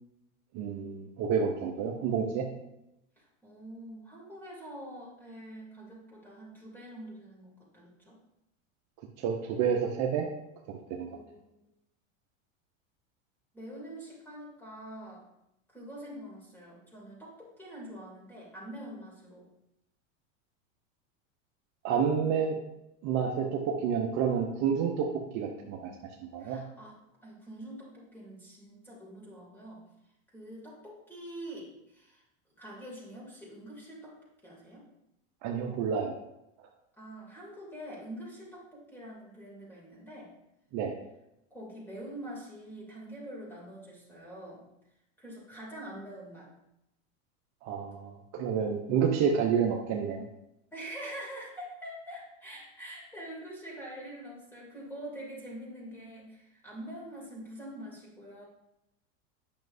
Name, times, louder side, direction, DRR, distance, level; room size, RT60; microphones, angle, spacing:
voice 1, 0.5-2.5 9.2-10.3 10.7-11.1 21.8-22.6 23.0-25.1 25.3-25.9 26.2-26.6 35.4-36.2 40.7-40.9 47.6-50.3, right 7 dB, 45° right, 1 dB, 0.9 m, -29 dB
voice 2, 3.2-8.2 11.1-11.7 13.5-15.2 15.7-19.5 26.4-26.9 27.2-29.8 30.3-32.2 32.6-34.2 34.4-34.9 37.0-40.3 41.5-44.7 45.2-46.5 50.7-58.5, right 1 dB, 5° left, -5 dB, 2.7 m, -45 dB
8.9 x 5.9 x 2.7 m, 0.86 s
supercardioid pair, 120°, 39 cm